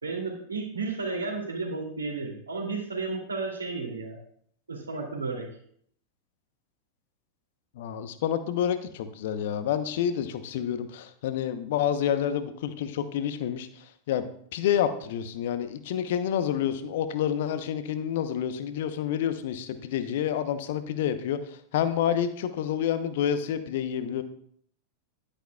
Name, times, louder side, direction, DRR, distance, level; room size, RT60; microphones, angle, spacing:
voice 1, 0.0-4.2 4.7-5.5, right 3 dB, 75° right, 0 dB, 2.6 m, -33 dB
voice 2, 7.8-14.2 14.5-24.2, left 9 dB, 55° left, 11 dB, 0.8 m, -28 dB
11.5 x 9.9 x 2.3 m, 0.63 s
figure-of-eight pair, 90°, 0 cm